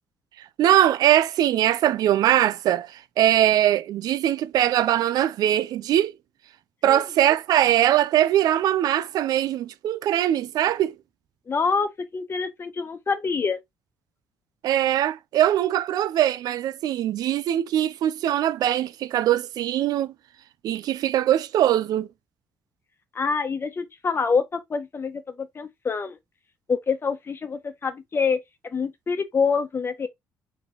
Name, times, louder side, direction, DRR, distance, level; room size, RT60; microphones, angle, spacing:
voice 1, 0.6-6.1 6.8-10.9 14.6-20.1 20.6-22.1, right 12 dB, 75° right, 0.4 m, -21 dB
voice 2, 11.5-13.6 23.1-26.2 26.7-30.1, left 5 dB, 35° left, 1.1 m, -26 dB
4.7 x 3.2 x 3.2 m
cardioid pair, 90°, 7 cm